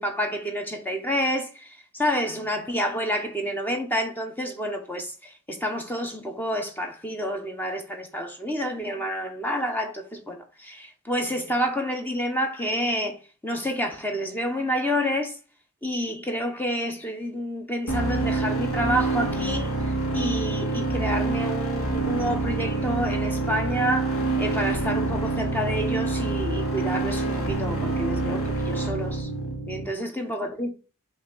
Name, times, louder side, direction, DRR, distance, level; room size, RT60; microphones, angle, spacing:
voice 1, 0.0-15.4 15.8-29.3 29.7-30.7, equal, 10° left, 0.8 m, -29 dB
sound 1, 17.9-29.9, right 3 dB, 80° left, 1.9 m, -26 dB
5.7 x 3.2 x 5.2 m
head